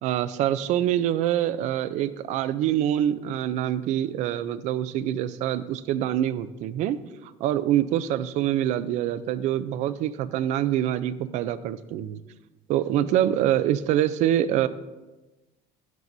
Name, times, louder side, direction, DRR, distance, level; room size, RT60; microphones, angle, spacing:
voice 1, 0.0-7.0 7.2-12.2 12.7-14.7, right 11 dB, 50° right, 14 dB, 0.5 m, -25 dB
13.0 x 11.0 x 2.7 m, 1.1 s
cardioid pair, 170°, 15 cm